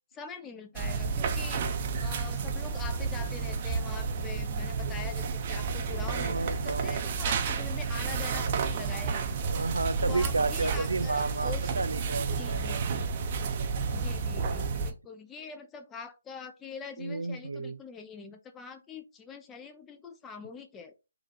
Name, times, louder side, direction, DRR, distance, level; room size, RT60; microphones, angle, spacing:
voice 1, 0.1-1.7 2.0-9.5 10.0-11.8 12.3-13.1 13.9-20.9, left 5 dB, 10° left, 0.4 m, -44 dB
sound 1, 0.8-14.9, right 5 dB, 35° right, 0.6 m, -31 dB
voice 2, 6.1-7.0 9.5-12.6 17.0-17.8, right 3 dB, 80° right, 0.4 m, -32 dB
3.9 x 2.4 x 3.9 m
figure-of-eight pair, 150°, 0 cm